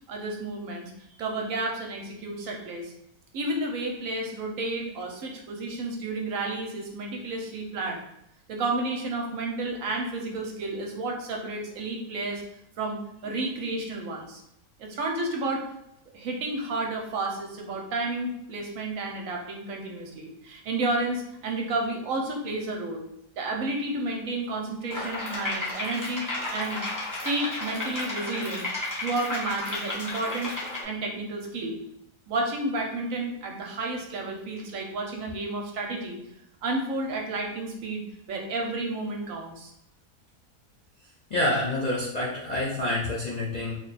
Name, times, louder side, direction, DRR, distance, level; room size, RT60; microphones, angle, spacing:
voice 1, 0.1-0.9 1.2-2.9 3.3-8.0 8.5-12.4 12.8-13.0 13.2-14.4 14.8-15.6 16.1-23.1 23.4-26.8 27.2-28.7 29.0-30.5 30.8-31.8 32.3-36.2 36.6-39.7, right 2 dB, 65° right, 1 dB, 1.0 m, -31 dB
sound 1, 24.9-30.8, left 2 dB, 15° left, 0.7 m, -33 dB
voice 2, 41.3-43.7, left 1 dB, 70° left, -5 dB, 0.4 m, -27 dB
3.2 x 2.2 x 4.0 m, 0.78 s
omnidirectional pair, 1.6 m